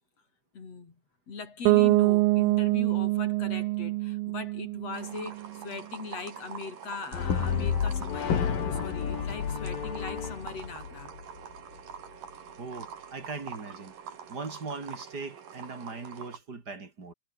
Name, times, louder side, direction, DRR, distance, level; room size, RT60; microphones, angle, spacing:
voice 1, 0.5-1.0 1.3-11.2, left 4 dB, 45° left, 5.0 m, -40 dB
Bass guitar, 1.7-5.5, right 21 dB, 90° right, 2.4 m, -25 dB
sound 1, 4.9-16.4, right 8 dB, 70° right, 4.3 m, -45 dB
Brass instrument, 7.1-11.4, left 7 dB, 75° left, 5.1 m, -30 dB
voice 2, 12.6-13.9 14.3-17.1, right 4 dB, 30° right, 3.7 m, -39 dB
omnidirectional pair, 4.0 m